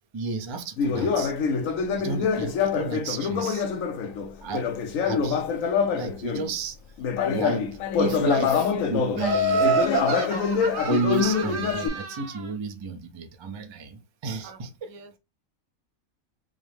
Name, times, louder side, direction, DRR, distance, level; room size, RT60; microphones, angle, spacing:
voice 1, 0.1-1.3 2.0-3.6 4.4-4.7 5.0-5.4 5.9-6.8 7.2-7.7 8.0-9.7 10.9-14.9, right 3 dB, 40° right, 0.4 m, -31 dB
Conversation, 0.8-6.5 7.0-11.9, left 6 dB, 70° left, 1.0 m, -25 dB
Laughter, 9.2-12.4, right 3 dB, 55° right, 1.0 m, -27 dB
voice 2, 14.4-15.2, right 4 dB, 80° right, 1.2 m, -48 dB
5.1 x 2.1 x 3.2 m
omnidirectional pair, 1.5 m